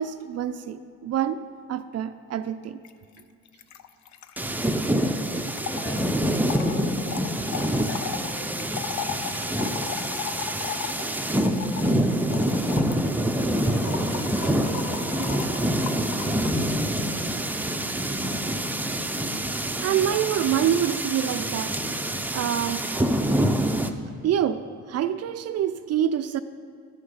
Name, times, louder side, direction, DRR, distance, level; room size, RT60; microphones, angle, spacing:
voice 1, 0.0-2.8 19.8-21.8 22.3-22.8 24.2-26.4, right 9 dB, 55° right, 11 dB, 0.4 m, -26 dB
Trickle dribble / Fill (with liquid), 2.8-2.9 3.2-3.3 3.5-16.6, left 9 dB, 70° left, 0.6 m, -37 dB
sound 1, 4.4-23.9, right 1 dB, 5° right, 0.5 m, -26 dB
voice 2, 5.8-6.2 6.5-7.1 7.9-8.8 9.2-10.4 11.4-12.5 13.3-14.1 14.5-15.3 15.9-18.9, left 1 dB, 35° left, -5 dB, 2.7 m, -40 dB
12.0 x 6.5 x 5.7 m, 2.4 s
cardioid pair, 90°, 30 cm